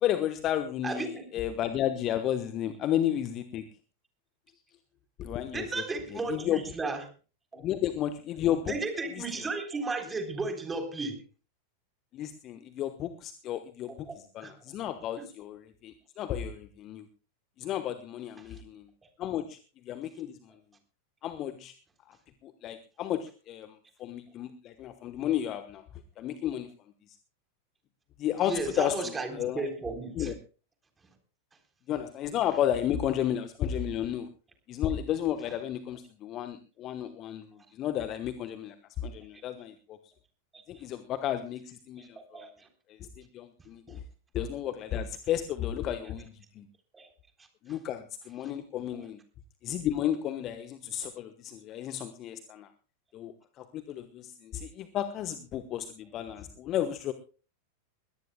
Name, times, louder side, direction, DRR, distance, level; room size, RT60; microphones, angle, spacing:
voice 1, 0.0-3.6 5.2-5.8 6.3-6.6 7.5-8.7 9.2-9.3 12.1-14.1 14.3-17.1 17.6-18.9 19.2-19.6 19.8-20.4 21.2-21.7 22.4-25.8 26.2-26.7 28.2-29.7 30.2-30.3 31.9-34.3 34.7-38.7 39.0-40.0 40.7-42.4 42.9-44.0 44.3-46.7 47.6-49.2 49.6-52.7 53.1-57.1, left 11 dB, 35° left, 10 dB, 1.1 m, -32 dB
voice 2, 0.8-1.3 5.5-7.0 7.5-7.7 8.7-11.2 13.9-14.5 15.2-15.3 18.4-18.5 28.4-30.3 42.0-42.1 42.3-42.7 43.9-44.0 46.9-47.1, right 3 dB, 15° right, 5 dB, 3.8 m, -34 dB
22.5 x 17.5 x 2.3 m, 0.35 s
figure-of-eight pair, 90°, 0 cm